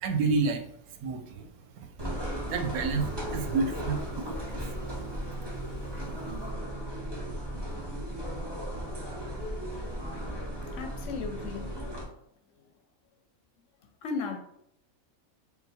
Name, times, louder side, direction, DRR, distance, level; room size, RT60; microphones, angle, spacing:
voice 1, 0.0-0.6 1.0-1.5 1.8-1.9 2.5-4.7, right 4 dB, 90° right, 1.1 m, -29 dB
sound 1, 2.0-12.0, equal, 25° right, 0.7 m, -36 dB
voice 2, 10.7-12.0 14.0-14.4, left 4 dB, 70° left, 0.8 m, -36 dB
3.9 x 2.2 x 4.1 m
omnidirectional pair, 1.5 m